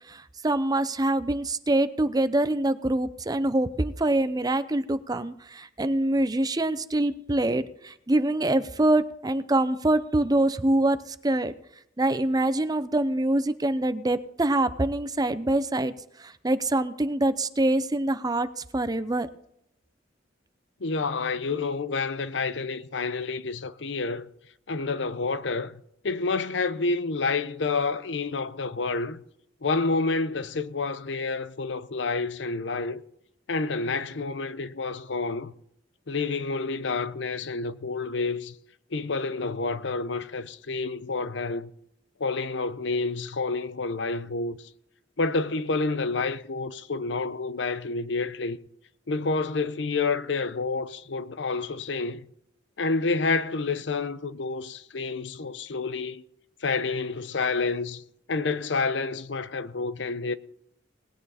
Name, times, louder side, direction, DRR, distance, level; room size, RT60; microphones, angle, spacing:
voice 1, 0.1-11.5 12.0-15.9 16.2-18.5 18.7-19.3, right 1 dB, 20° right, 0.6 m, -25 dB
voice 2, 20.8-24.3 24.7-25.7 26.0-29.2 29.6-33.0 33.5-35.5 36.1-38.5 38.9-41.7 42.2-44.7 45.2-48.6 49.1-52.2 52.8-56.2 56.6-58.0 58.3-60.3, left 3 dB, 70° left, 0.7 m, -29 dB
19.5 x 9.0 x 4.2 m
head